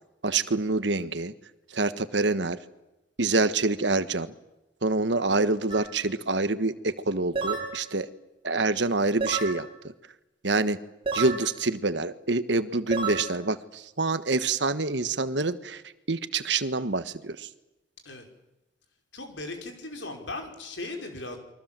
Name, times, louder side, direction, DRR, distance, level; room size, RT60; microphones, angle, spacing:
voice 1, 0.2-1.3 1.7-2.6 3.2-4.3 4.8-8.1 8.4-9.7 10.4-10.8 11.1-15.8 16.1-17.5, right 3 dB, 70° right, 12 dB, 1.4 m, -26 dB
sound 1, 5.7-5.9 7.3-7.7 9.2-9.6 11.1-11.4 12.9-13.2, right 5 dB, 30° right, 5.3 m, -29 dB
voice 2, 19.1-21.4, left 2 dB, 80° left, 4 dB, 5.4 m, -37 dB
29.5 x 23.5 x 7.6 m, 0.97 s
head